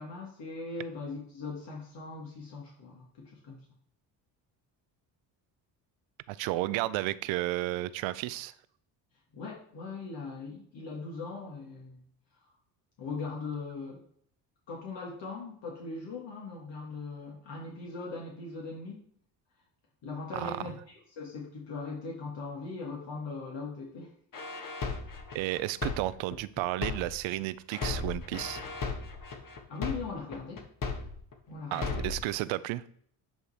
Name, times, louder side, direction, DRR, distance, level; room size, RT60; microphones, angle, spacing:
voice 1, 0.0-3.6 9.3-12.0 12.4-12.5 13.0-14.0 14.7-19.0 20.0-24.1 29.7-30.6 31.5-32.1, left 4 dB, 65° left, 1.9 m, -40 dB
voice 2, 6.3-8.5 20.3-20.6 25.3-28.6 31.7-32.8, right 16 dB, 80° right, 0.5 m, -32 dB
sound 1, 24.3-27.3 27.7-31.3 31.7-32.3, left 4 dB, 45° left, 1.5 m, -36 dB
9.2 x 3.3 x 4.2 m
supercardioid pair, 75°, 46 cm